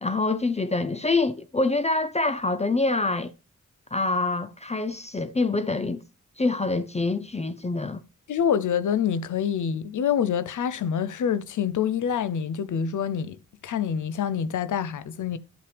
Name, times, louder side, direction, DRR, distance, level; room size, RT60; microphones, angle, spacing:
voice 1, 0.0-3.3 3.9-6.0 6.4-8.0, left 3 dB, 20° left, 0.5 m, -25 dB
voice 2, 8.3-13.4 13.6-15.4, left 8 dB, 80° left, 0.6 m, -26 dB
12.0 x 5.5 x 3.3 m
cardioid pair, 60°, 30 cm